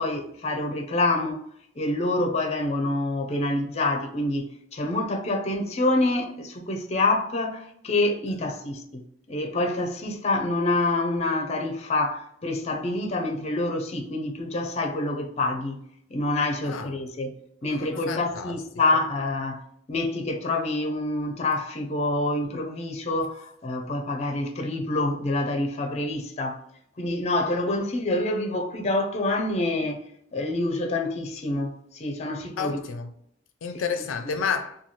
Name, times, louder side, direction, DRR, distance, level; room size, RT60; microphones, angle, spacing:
voice 1, 0.0-1.4 1.8-4.4 4.7-9.0 9.3-15.8 16.1-17.3 17.6-19.6 19.9-26.6 27.0-32.8, left 2 dB, 35° left, 0.5 m, -27 dB
voice 2, 17.7-18.5 32.6-33.1 33.6-34.8, left 6 dB, 90° left, 0.4 m, -30 dB
3.1 x 2.3 x 4.0 m
head